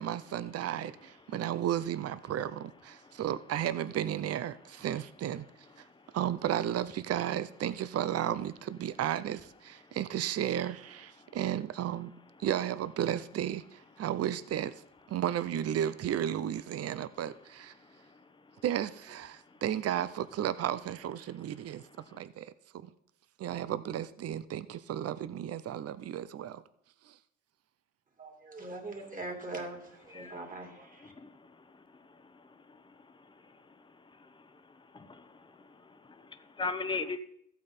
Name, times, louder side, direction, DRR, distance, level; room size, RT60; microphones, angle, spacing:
voice 1, 0.0-5.5 6.1-12.1 12.4-14.7 15.1-17.7 18.6-21.8 22.1-22.5 22.8-22.9 23.4-26.6 27.1-27.2, right 10 dB, 55° right, 14 dB, 0.6 m, -33 dB
voice 2, 28.2-31.1, right 2 dB, 25° right, 3 dB, 2.8 m, -42 dB
voice 3, 31.2-31.5 32.7-32.8 34.2-34.3 34.9-35.5 35.8-37.2, left 4 dB, 15° left, 10 dB, 0.9 m, -38 dB
14.0 x 8.4 x 4.3 m, 0.71 s
cardioid pair, 90°, 30 cm